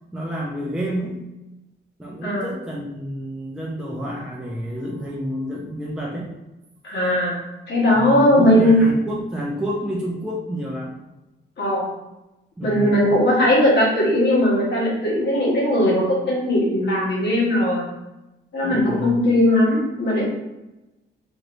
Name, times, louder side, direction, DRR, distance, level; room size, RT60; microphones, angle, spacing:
voice 1, 0.1-1.2 2.0-6.3 7.9-11.0 12.6-13.0 18.6-19.2, equal, 5° right, -3 dB, 0.4 m, -29 dB
voice 2, 6.8-7.4 7.7-8.8 11.6-11.9 12.6-17.9 18.5-20.3, left 1 dB, 60° left, -5 dB, 1.4 m, -18 dB
3.0 x 3.0 x 2.6 m, 0.99 s
wide cardioid pair, 175°, 19 cm